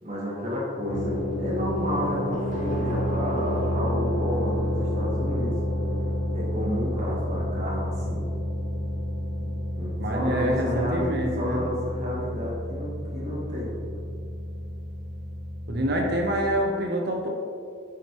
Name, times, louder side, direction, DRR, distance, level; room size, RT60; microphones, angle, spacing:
voice 1, 0.0-5.5 6.3-8.3 9.7-13.8, equal, 35° right, -6 dB, 1.4 m, -31 dB
sound 1, 0.9-16.5, equal, 40° left, 0.6 m, -29 dB
voice 2, 10.0-11.6 15.7-17.3, equal, 55° right, 1 dB, 0.8 m, -26 dB
6.2 x 5.1 x 3.0 m, 2.3 s
head